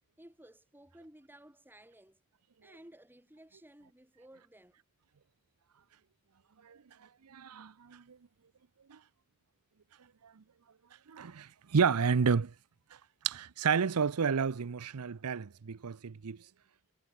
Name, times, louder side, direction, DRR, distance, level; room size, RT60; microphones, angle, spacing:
voice 1, 0.2-2.2 2.6-4.8, right 1 dB, 10° right, 4.3 m, -56 dB
voice 2, 7.2-8.2 8.9-9.0 10.2-10.4 11.1-12.5 13.2-16.4, right 6 dB, 80° right, 0.6 m, -31 dB
head